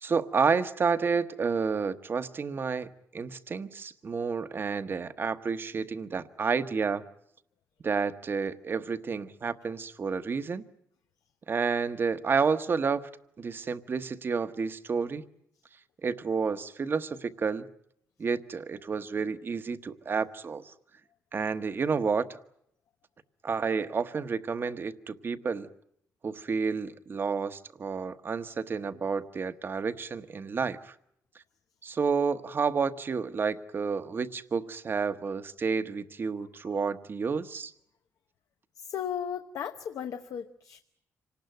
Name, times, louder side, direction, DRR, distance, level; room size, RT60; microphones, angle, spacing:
voice 1, 0.0-7.0 7.8-10.6 11.5-13.0 13.4-15.2 16.0-17.7 18.2-20.7 21.3-22.3 23.4-25.7 26.2-30.9 31.8-37.7, right 5 dB, 40° right, 10 dB, 1.1 m, -30 dB
voice 2, 38.9-40.8, left 8 dB, 75° left, 7 dB, 1.0 m, -35 dB
26.0 x 19.0 x 9.2 m, 0.73 s
cardioid pair, 125°, 6 cm